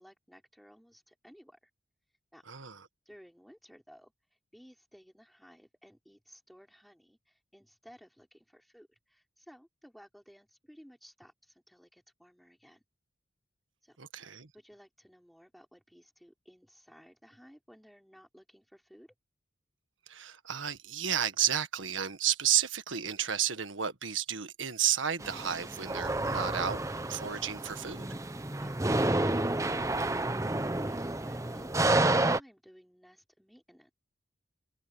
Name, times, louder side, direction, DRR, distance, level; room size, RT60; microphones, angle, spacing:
voice 1, 0.0-1.7 2.3-2.5 3.0-12.8 13.8-14.0 14.5-19.1 30.8-33.9, equal, ahead, 4.3 m, -57 dB
voice 2, 14.0-14.5 20.1-26.8 27.1-28.1, right 9 dB, 85° right, 1.6 m, -32 dB
sound 1, 25.2-32.4, right 2 dB, 15° right, 0.8 m, -30 dB
head